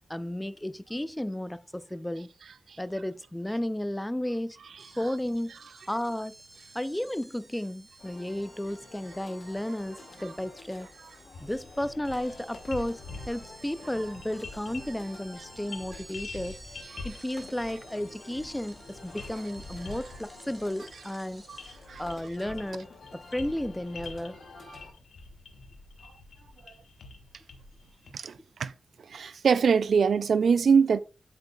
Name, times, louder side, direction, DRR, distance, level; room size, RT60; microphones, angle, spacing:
voice 1, 0.1-2.3 2.8-4.6 5.0-5.5 5.9-6.3 6.7-10.9 11.4-13.0 13.3-16.6 17.0-21.4 22.0-24.4 28.4-28.5, left 1 dB, 10° left, 0.4 m, -33 dB
sound 1, 4.8-23.9, right 2 dB, 35° right, 1.9 m, -54 dB
sound 2, 8.0-24.9, left 3 dB, 75° left, 2.1 m, -50 dB
sound 3, 11.3-28.1, left 3 dB, 90° left, 1.3 m, -46 dB
voice 2, 29.1-31.0, right 6 dB, 75° right, 0.4 m, -23 dB
8.1 x 6.7 x 2.3 m
cardioid pair, 70°, 0 cm